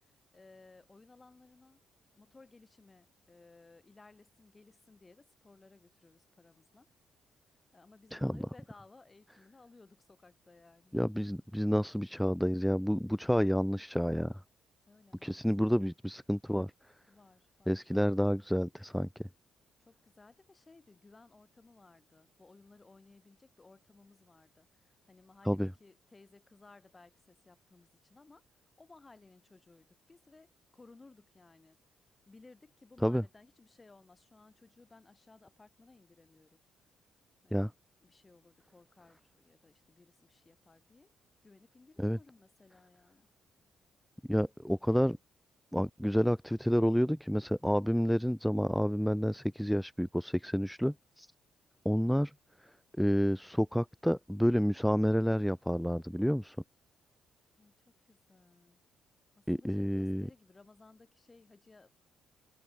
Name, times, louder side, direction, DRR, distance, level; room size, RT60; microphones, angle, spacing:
voice 1, 0.0-1.8 2.1-6.9 7.7-11.0 14.9-15.7 17.1-17.8 19.8-31.8 32.3-36.6 37.4-37.7 38.0-41.1 41.4-43.3 57.6-58.8 59.4-61.9, left 3 dB, 25° left, 5.7 m, -60 dB
voice 2, 10.9-14.4 15.2-16.7 17.7-19.1 25.4-25.7 33.0-33.2 37.5-37.7 42.0-42.2 44.3-45.2 45.7-51.3 51.8-52.3 53.0-56.6 59.5-60.3, equal, ahead, 0.7 m, -29 dB
cardioid pair, 90°, 0 cm